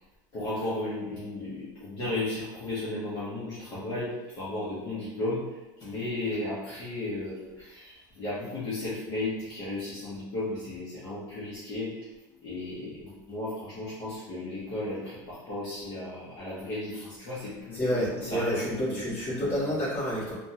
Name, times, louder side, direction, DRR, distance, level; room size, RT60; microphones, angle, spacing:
voice 1, 0.3-12.1 12.4-19.0 19.4-19.8, left 2 dB, 40° left, -10 dB, 0.9 m, -35 dB
voice 2, 17.7-20.3, equal, 20° left, -10 dB, 1.5 m, -29 dB
3.4 x 2.3 x 2.7 m, 1.1 s
cardioid pair, 160°, 10 cm